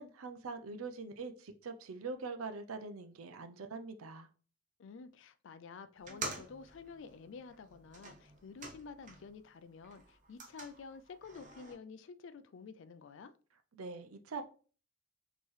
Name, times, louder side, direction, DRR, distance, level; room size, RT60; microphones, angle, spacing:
voice 1, 0.0-4.3 13.8-14.4, right 4 dB, 85° right, 0.6 m, -43 dB
voice 2, 4.8-13.3, left 5 dB, 60° left, 0.4 m, -50 dB
sound 1, 6.0-9.4 9.7-11.7, right 3 dB, 35° right, 0.7 m, -48 dB
4.4 x 3.0 x 3.2 m
head